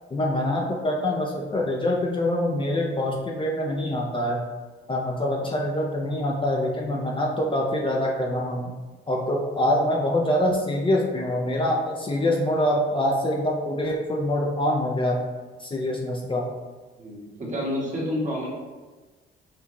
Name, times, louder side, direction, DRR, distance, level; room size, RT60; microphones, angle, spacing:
voice 1, 0.1-4.4 4.9-8.7 9.1-15.2 15.6-16.5, left 1 dB, 25° left, -1 dB, 0.6 m, -25 dB
voice 2, 17.0-18.5, left 1 dB, 35° right, -4 dB, 1.5 m, -29 dB
5.7 x 2.4 x 3.0 m, 1.3 s
cardioid pair, 90°, 20 cm